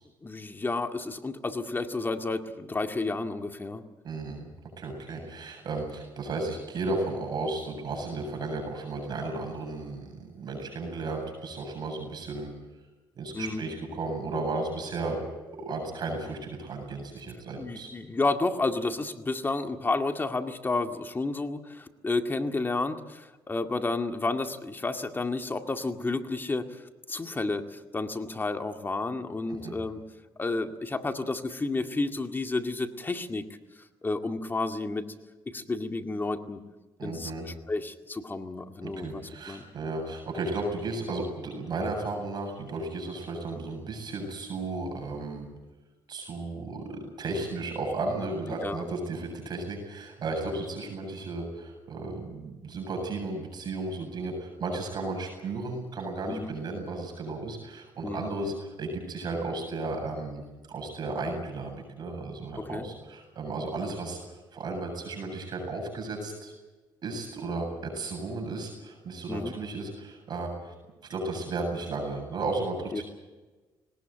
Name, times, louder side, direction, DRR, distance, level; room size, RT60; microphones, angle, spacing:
voice 1, 0.2-3.8 13.3-13.6 17.6-30.0 30.4-33.4 34.0-35.1 35.5-36.6 37.0-39.2 39.5-39.7 48.6-48.8 56.3-56.5 58.0-58.3 62.5-62.9 69.3-69.5 72.9-73.0, left 3 dB, 25° left, 5 dB, 2.1 m, -31 dB
voice 2, 4.0-4.5 4.8-12.5 13.2-15.2 15.5-17.9 29.5-29.8 37.0-37.5 38.8-45.5 46.1-60.4 60.7-64.2 64.5-66.5 67.0-70.7 71.1-73.0, right 3 dB, 55° right, 3 dB, 7.7 m, -34 dB
21.0 x 19.5 x 9.1 m, 1.2 s
cardioid pair, 80°, 9 cm